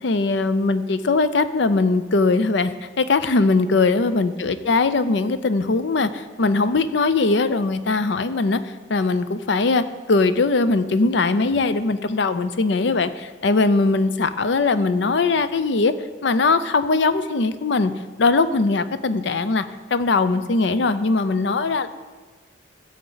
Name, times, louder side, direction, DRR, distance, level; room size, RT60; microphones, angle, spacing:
voice 1, 0.0-15.9 16.2-17.9 18.2-19.6 19.9-21.9, left 3 dB, 65° left, 12 dB, 0.5 m, -20 dB
14.5 x 7.8 x 3.9 m, 1.3 s
head